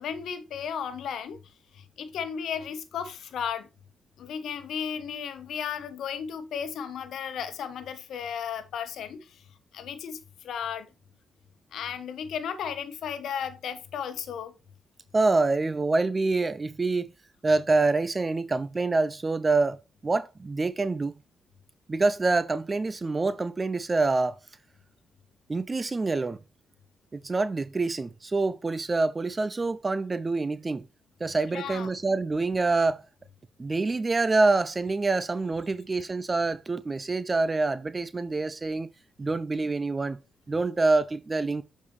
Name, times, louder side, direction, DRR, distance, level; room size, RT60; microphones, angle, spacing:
voice 1, 0.0-1.4 1.7-3.7 4.2-9.4 9.7-10.9 11.7-14.5 31.5-31.9, left 7 dB, 75° left, 0.9 m, -34 dB
voice 2, 15.1-17.1 17.4-19.8 20.0-21.1 21.9-24.4 25.5-26.4 27.1-30.8 31.2-33.0 33.6-38.9 39.2-40.2 40.5-41.6, right 3 dB, 35° right, 0.4 m, -26 dB
6.9 x 5.1 x 3.2 m
supercardioid pair, 55°, 0 cm